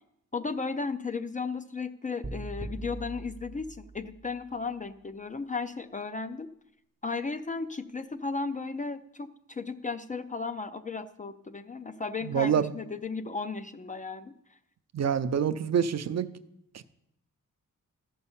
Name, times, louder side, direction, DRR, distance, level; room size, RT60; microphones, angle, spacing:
voice 1, 0.3-6.5 7.0-14.3, left 4 dB, 25° left, 10 dB, 0.4 m, -35 dB
sound 1, 2.2-4.5, right 2 dB, 15° right, 0.6 m, -40 dB
voice 2, 12.2-12.7 14.9-16.3 16.7-16.8, right 7 dB, 55° right, 11 dB, 0.5 m, -26 dB
13.5 x 5.4 x 7.1 m, 0.79 s
wide cardioid pair, 170°, 33 cm